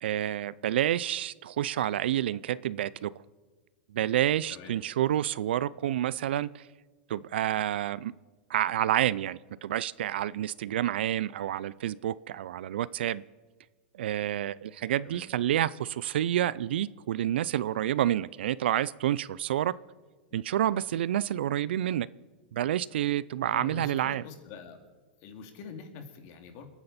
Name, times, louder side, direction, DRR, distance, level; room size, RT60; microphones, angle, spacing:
voice 1, 0.0-3.1 3.9-6.6 7.1-8.1 8.5-13.2 14.0-19.7 20.3-22.1 22.5-24.2, right 12 dB, 75° right, 20 dB, 0.4 m, -29 dB
voice 2, 23.4-24.8 25.2-26.7, left 5 dB, 50° left, 5 dB, 2.6 m, -45 dB
28.0 x 9.8 x 4.2 m, 1.4 s
hypercardioid pair, 125°, 6 cm